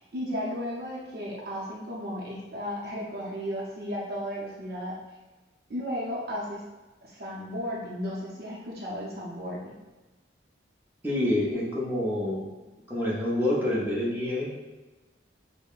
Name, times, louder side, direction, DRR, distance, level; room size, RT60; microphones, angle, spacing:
voice 1, 0.1-5.0 5.7-6.6 7.0-9.8, equal, 55° right, -5 dB, 0.6 m, -34 dB
voice 2, 11.0-12.4 12.9-14.7, left 1 dB, 10° right, -7 dB, 0.7 m, -27 dB
5.4 x 2.1 x 2.4 m, 1.2 s
head